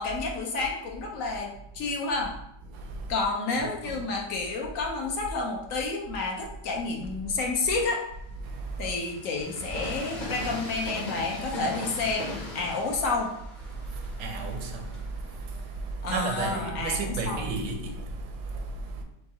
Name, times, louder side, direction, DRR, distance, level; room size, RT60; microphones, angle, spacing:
voice 1, 0.0-2.3 3.1-8.0 8.8-13.3 16.0-17.5, left 3 dB, 60° left, 1.0 m, -30 dB
voice 2, 2.7-3.2 3.8-4.0 8.4-8.9 13.7-19.0, right 3 dB, 75° right, 1.2 m, -34 dB
Train, 3.6-5.3 5.9-16.5, left 1 dB, 35° left, 0.9 m, -41 dB
4.7 x 2.5 x 4.0 m
omnidirectional pair, 1.8 m